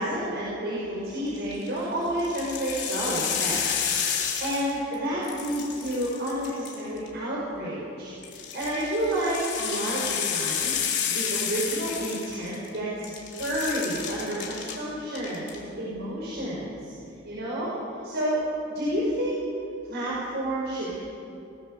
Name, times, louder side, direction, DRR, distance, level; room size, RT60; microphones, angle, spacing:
voice 1, 0.0-10.7 11.1-16.9 17.2-17.7 18.0-19.4 19.9-21.0, right 1 dB, 55° right, -7 dB, 6.4 m, -30 dB
sound 1, 1.4-1.7 2.2-4.9 5.2-7.1 8.2-12.8 13.0-14.7 15.1-15.6, left 8 dB, 60° left, 4.4 m, -30 dB
30.0 x 20.0 x 7.1 m, 2.8 s
head